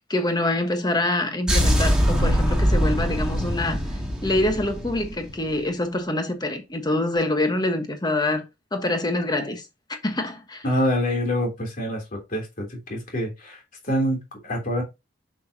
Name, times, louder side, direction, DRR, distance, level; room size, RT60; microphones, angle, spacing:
voice 1, 0.0-3.8 4.2-8.4 8.7-9.6 9.9-10.6, left 1 dB, 20° left, 1.3 m, -25 dB
sound 1, 1.5-5.6, equal, 5° right, 2.0 m, -22 dB
voice 2, 10.6-13.6 13.9-14.8, equal, 45° left, 3.2 m, -26 dB
6.6 x 6.2 x 2.8 m
head